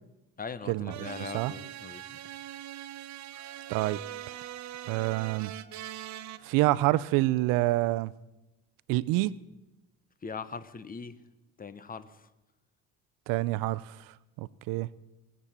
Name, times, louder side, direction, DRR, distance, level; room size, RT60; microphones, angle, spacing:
voice 1, 0.4-2.1 10.2-11.2 11.6-12.3, left 5 dB, 25° left, 15 dB, 1.0 m, -40 dB
sound 1, 0.9-6.4, right 13 dB, 60° right, 0.8 m, -42 dB
Wind instrument woodwind instrument, 3.3-7.8, equal, 70° left, 5.3 m, -59 dB
voice 2, 3.7-4.0 4.3-4.4 4.9-5.5 6.4-8.1 8.9-9.4 13.3-13.9 14.4-14.9, right 18 dB, 90° right, 19 dB, 0.6 m, -27 dB
20.0 x 8.3 x 7.3 m, 0.98 s
cardioid pair, 100°, 32 cm